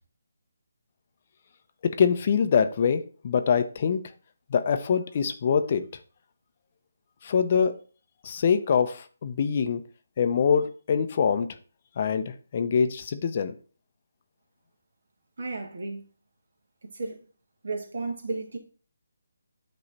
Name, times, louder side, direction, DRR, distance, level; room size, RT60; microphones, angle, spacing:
voice 1, 1.8-4.0 4.5-5.8 7.2-7.8 8.2-9.8 10.2-11.6 12.0-13.5, left 6 dB, 40° left, 0.6 m, -24 dB
voice 2, 15.4-16.0 16.8-17.2 17.6-18.6, right 3 dB, 60° right, 1.6 m, -33 dB
8.6 x 3.1 x 4.0 m
figure-of-eight pair, 155°, 0 cm